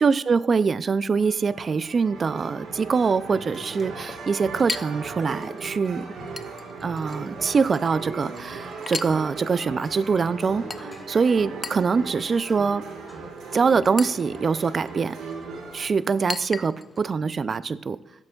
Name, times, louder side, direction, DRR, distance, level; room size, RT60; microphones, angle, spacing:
voice 1, 0.0-6.0 6.8-12.8 13.5-15.2 15.7-18.0, right 5 dB, 40° right, 16 dB, 0.4 m, -24 dB
sound 1, 1.2-15.9, right 4 dB, 75° right, 1.6 m, -38 dB
Chink clink, 2.2-17.1, left 3 dB, 25° left, 0.5 m, -40 dB
14.0 x 7.6 x 2.4 m, 0.88 s
cardioid pair, 90°, 0 cm